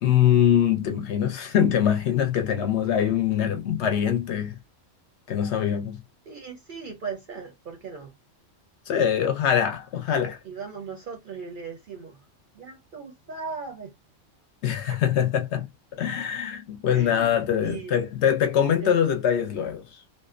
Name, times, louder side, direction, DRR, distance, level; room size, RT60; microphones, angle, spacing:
voice 1, 0.0-4.6 5.3-6.0 8.9-10.4 14.6-15.7 15.9-19.8, left 9 dB, 65° left, 0.8 m, -23 dB
voice 2, 6.3-8.1 10.4-12.2 12.5-13.9 14.9-15.0 16.9-18.0 18.8-18.9, right 5 dB, 55° right, 0.6 m, -38 dB
2.6 x 2.0 x 2.4 m
omnidirectional pair, 1.3 m